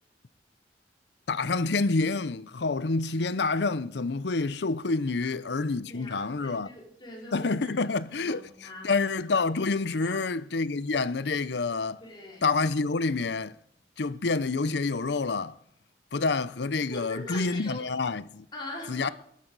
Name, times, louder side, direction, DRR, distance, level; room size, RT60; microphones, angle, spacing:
voice 1, 1.3-6.7 7.3-12.0 12.4-13.6 14.0-15.6 16.1-18.5 18.9-19.1, left 3 dB, 70° left, 0.6 m, -28 dB
voice 2, 5.9-7.5 7.8-8.9 10.0-10.2 12.0-12.6 16.9-17.9 18.5-19.1, left 1 dB, 25° left, 5.1 m, -42 dB
17.5 x 12.5 x 4.0 m
head